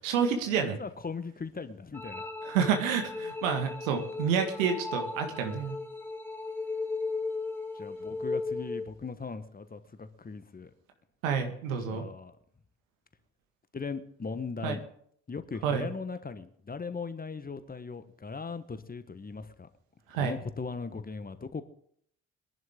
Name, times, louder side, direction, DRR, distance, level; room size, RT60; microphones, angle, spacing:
voice 1, 0.0-0.8 2.5-5.8 11.2-12.1 14.6-14.8 15.6-15.9 20.1-20.4, right 7 dB, 70° right, 5 dB, 1.9 m, -29 dB
voice 2, 0.8-2.3 7.7-10.7 11.9-12.4 13.7-14.8 15.3-19.7 20.2-21.6, left 4 dB, 20° left, 11 dB, 1.3 m, -39 dB
sound 1, 1.9-8.9, left 3 dB, 5° left, 1.9 m, -36 dB
22.5 x 11.0 x 3.8 m, 0.65 s
figure-of-eight pair, 45°, 40 cm